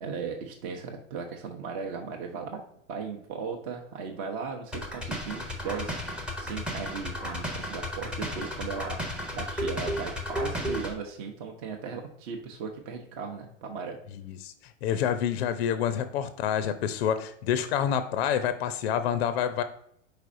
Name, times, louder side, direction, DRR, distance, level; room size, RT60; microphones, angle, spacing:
voice 1, 0.0-2.6 2.9-6.0 6.4-9.0 9.3-14.0, right 5 dB, 40° right, 2 dB, 0.7 m, -37 dB
sound 1, 4.7-10.9, equal, 5° right, 0.5 m, -33 dB
voice 2, 14.8-19.6, left 9 dB, 55° left, 11 dB, 0.5 m, -27 dB
4.9 x 4.3 x 2.5 m, 0.70 s
hypercardioid pair, 105°, 38 cm